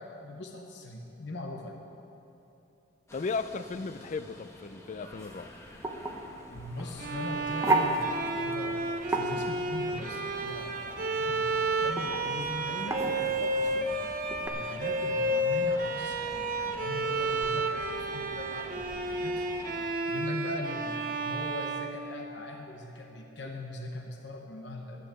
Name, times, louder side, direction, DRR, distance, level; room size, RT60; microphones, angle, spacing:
voice 1, 0.0-1.8 6.5-14.0 14.5-19.0 19.2-19.5 20.1-25.1, left 2 dB, 60° left, 2 dB, 1.0 m, -41 dB
voice 2, 3.1-5.5, left 4 dB, 40° left, 13 dB, 0.3 m, -35 dB
sound 1, 3.1-19.9, left 1 dB, 15° left, 1.0 m, -48 dB
sound 2, 5.2-14.5, right 2 dB, 15° right, 0.9 m, -34 dB
Bowed string instrument, 7.0-22.7, right 2 dB, 45° right, 0.7 m, -32 dB
12.0 x 7.9 x 7.5 m, 2.9 s
head